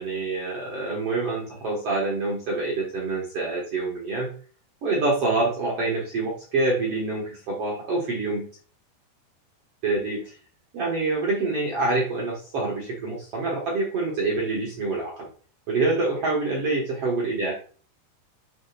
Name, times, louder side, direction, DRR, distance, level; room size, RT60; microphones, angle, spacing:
voice 1, 0.0-4.3 4.8-8.5 9.8-10.3 10.7-15.3 15.7-17.5, right 3 dB, 80° right, -3 dB, 1.3 m, -26 dB
7.2 x 6.5 x 2.4 m, 0.41 s
omnidirectional pair, 5.1 m